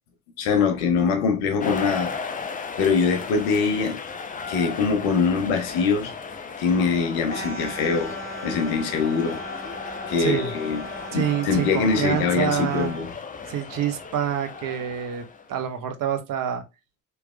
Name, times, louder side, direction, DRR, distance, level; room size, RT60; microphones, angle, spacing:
voice 1, 0.4-2.1 2.8-4.0 4.5-6.1 6.6-8.1 8.4-9.4 10.1-10.8 11.1-13.1, left 5 dB, 80° left, 0.9 m, -23 dB
sound 1, 1.6-15.8, left 5 dB, 20° left, 0.5 m, -36 dB
sound 2, 7.3-13.1, right 1 dB, 25° right, 1.3 m, -38 dB
voice 2, 10.2-10.5 11.1-12.9 13.5-15.2 15.5-16.6, right 9 dB, 50° right, 0.8 m, -27 dB
3.3 x 3.1 x 2.2 m
hypercardioid pair, 55°, 43 cm